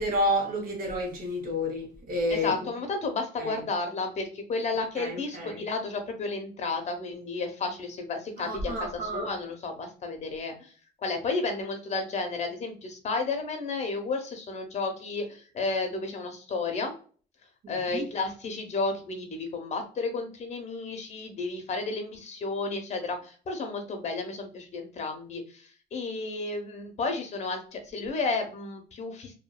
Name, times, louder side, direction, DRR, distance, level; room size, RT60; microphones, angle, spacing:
voice 1, 0.0-2.6 3.4-3.6 5.0-5.6 8.4-9.3 17.6-18.0, equal, 60° right, 1.4 m, -30 dB
voice 2, 2.3-10.7 11.0-16.9 17.7-29.3, left 3 dB, 40° left, 0.9 m, -32 dB
2.8 x 2.5 x 2.3 m
cardioid pair, 110°, 17 cm